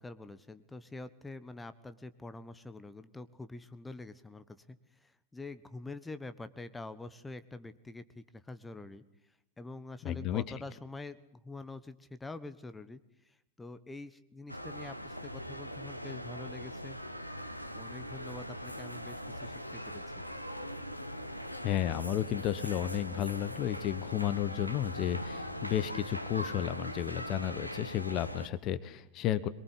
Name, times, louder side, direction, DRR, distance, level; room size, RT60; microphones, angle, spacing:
voice 1, 0.0-17.0 17.7-20.2, left 2 dB, 10° left, 14 dB, 1.3 m, -46 dB
voice 2, 10.0-10.4 21.6-29.5, left 11 dB, 35° left, 15 dB, 1.2 m, -32 dB
sound 1, 14.5-28.5, equal, 90° left, 1.4 m, -41 dB
23.5 x 22.5 x 10.0 m, 0.77 s
figure-of-eight pair, 90°, 0 cm